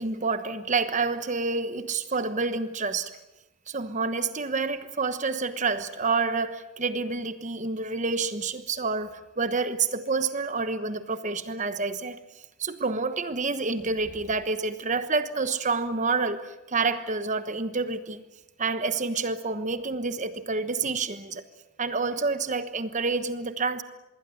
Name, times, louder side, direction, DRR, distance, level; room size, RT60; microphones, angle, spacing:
voice 1, 0.0-3.1 3.7-12.2 12.6-18.2 18.6-21.4 21.8-23.8, right 4 dB, 35° right, 1.2 m, -28 dB
26.0 x 22.0 x 7.8 m
head